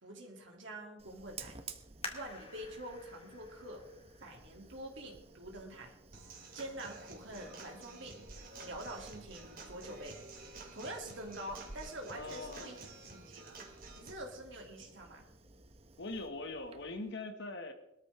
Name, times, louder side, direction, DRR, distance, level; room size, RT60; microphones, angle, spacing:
voice 1, 0.0-1.6 2.1-3.8 4.2-5.9 6.5-8.2 8.6-10.2 10.5-12.7 13.0-13.6 13.9-15.3, right 1 dB, 70° right, 0 dB, 2.8 m, -46 dB
Fire, 1.0-17.1, right 3 dB, 30° right, 1.1 m, -55 dB
sound 1, 2.0-5.4 6.0-6.1 6.7-7.1 7.5-7.6, left 3 dB, 30° left, 2.2 m, -49 dB
Human voice / Acoustic guitar / Drum, 6.1-14.1, right 3 dB, 50° right, 2.9 m, -51 dB
voice 2, 12.1-13.0 16.0-17.7, left 2 dB, 65° left, 5 dB, 1.8 m, -42 dB
21.5 x 13.5 x 3.6 m, 0.84 s
head